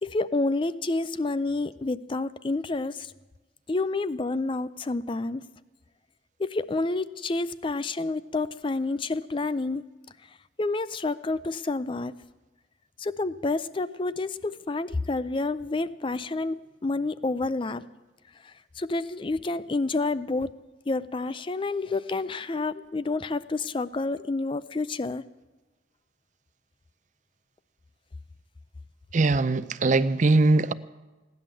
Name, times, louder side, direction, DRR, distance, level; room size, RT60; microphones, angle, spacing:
voice 1, 0.0-3.1 3.7-5.4 6.4-9.8 10.6-12.1 13.0-17.9 18.4-20.5 20.9-25.2, left 3 dB, 25° left, 0.4 m, -29 dB
voice 2, 29.1-30.7, right 3 dB, 40° right, 0.5 m, -21 dB
17.0 x 10.5 x 7.6 m
head